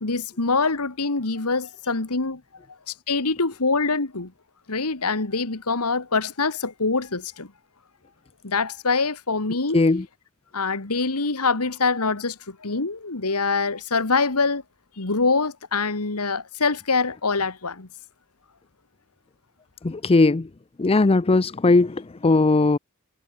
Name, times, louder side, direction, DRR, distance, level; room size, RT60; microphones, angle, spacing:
voice 1, 0.0-2.4 2.9-4.3 4.7-7.5 8.4-9.8 10.5-14.6 15.0-17.9, left 4 dB, 85° left, 2.0 m, -24 dB
voice 2, 9.7-10.0 19.8-20.5 20.8-22.8, left 3 dB, 25° left, 0.5 m, -18 dB
head